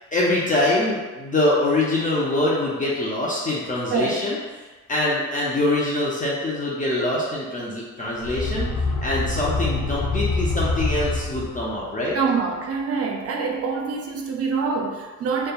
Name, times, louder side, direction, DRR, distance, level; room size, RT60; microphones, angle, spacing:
voice 1, 0.1-8.7 9.0-12.2, left 2 dB, 25° left, -6 dB, 0.5 m, -24 dB
voice 2, 3.9-4.2 12.1-15.5, right 5 dB, 50° right, 2 dB, 0.5 m, -25 dB
sound 1, 8.2-11.9, left 3 dB, 85° left, 0.5 m, -25 dB
2.7 x 2.1 x 2.2 m, 1.3 s
cardioid pair, 90°, 30 cm